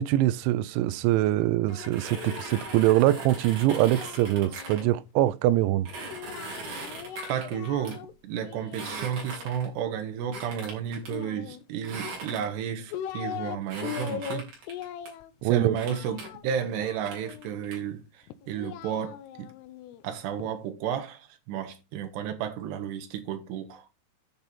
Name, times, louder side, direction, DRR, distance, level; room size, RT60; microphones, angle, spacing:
voice 1, 0.0-5.9 15.4-15.8, right 14 dB, 90° right, 3.1 m, -23 dB
Singing, 1.7-5.0 6.1-8.1 8.4-9.6 11.0-12.0 12.6-13.6 13.8-17.5 18.3-20.5, left 10 dB, 75° left, 2.6 m, -40 dB
sound 1, 1.7-4.8 5.9-8.0 8.7-9.8 10.3-11.1 11.8-12.7 13.7-15.1 15.8-16.3 16.8-17.8, right 3 dB, 55° right, 5.5 m, -40 dB
voice 2, 7.3-14.5 15.4-19.5 20.0-23.8, right 8 dB, 70° right, 3.4 m, -32 dB
10.5 x 6.9 x 4.4 m
omnidirectional pair, 5.2 m